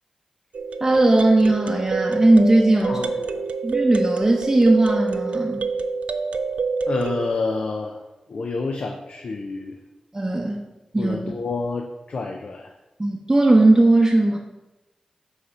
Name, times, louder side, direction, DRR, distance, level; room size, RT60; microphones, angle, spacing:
sound 1, 0.5-7.3, right 4 dB, 80° right, 0.4 m, -26 dB
voice 1, 0.8-3.0 3.6-5.7 10.1-10.6 10.9-11.2 13.0-14.4, right 2 dB, 25° right, -1 dB, 0.7 m, -18 dB
voice 2, 2.8-3.4 6.9-8.0 8.3-9.8 11.0-12.7, left 3 dB, 70° left, 3 dB, 0.6 m, -28 dB
5.6 x 4.1 x 5.4 m, 1.0 s
wide cardioid pair, 80°, 2 cm